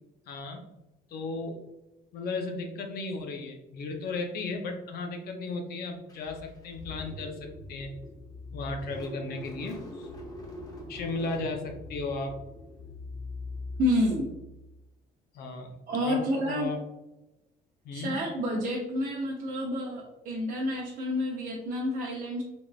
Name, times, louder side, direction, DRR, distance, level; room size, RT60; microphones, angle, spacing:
voice 1, 0.3-0.6 1.1-1.7 2.1-7.9 8.5-10.1 10.9-12.4 15.3-15.7 16.0-16.8 17.8-18.1, left 3 dB, 65° left, 4 dB, 0.6 m, -35 dB
Car / Engine starting, 6.1-14.8, left 2 dB, 20° left, 0.8 m, -42 dB
voice 2, 13.8-14.3 15.9-16.7 17.9-22.4, left 1 dB, 55° right, -3 dB, 0.6 m, -29 dB
3.5 x 2.5 x 2.3 m, 0.97 s
cardioid pair, 110°, 17 cm